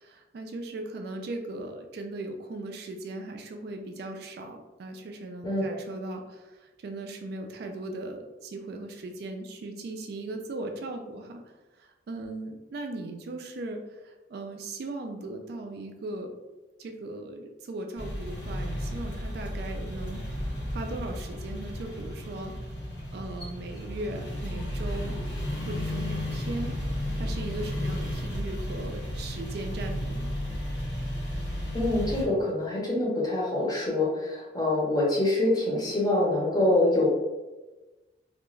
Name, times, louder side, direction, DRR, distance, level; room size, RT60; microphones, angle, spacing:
voice 1, 0.0-11.4 11.8-16.3 16.8-20.2 20.7-22.5 23.1-25.1 25.7-26.7 27.1-30.3, right 2 dB, 60° right, 4 dB, 0.3 m, -38 dB
sound 1, 18.0-32.2, equal, 65° left, 0.8 m, -33 dB
voice 2, 31.7-37.1, left 1 dB, 20° left, -4 dB, 0.7 m, -25 dB
2.4 x 2.2 x 3.0 m, 1.1 s
head